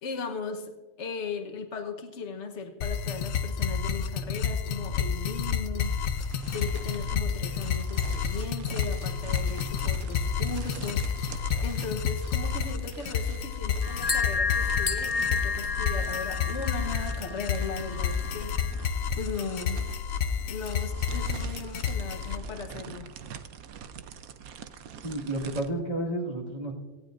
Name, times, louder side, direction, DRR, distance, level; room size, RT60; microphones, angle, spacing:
voice 1, 0.0-0.7 1.0-5.9 6.5-11.1 11.6-18.7 19.2-19.8 20.5-23.1, left 4 dB, 55° left, 5 dB, 1.4 m, -37 dB
sound 1, 2.8-22.4, left 7 dB, 75° left, 1.1 m, -30 dB
sound 2, 5.8-25.7, right 7 dB, 85° right, 1.2 m, -45 dB
sound 3, 13.8-18.8, left 4 dB, 30° left, 0.7 m, -31 dB
voice 2, 25.0-26.7, right 1 dB, 30° right, -3 dB, 2.0 m, -31 dB
18.0 x 15.0 x 2.6 m, 1.3 s
omnidirectional pair, 1.4 m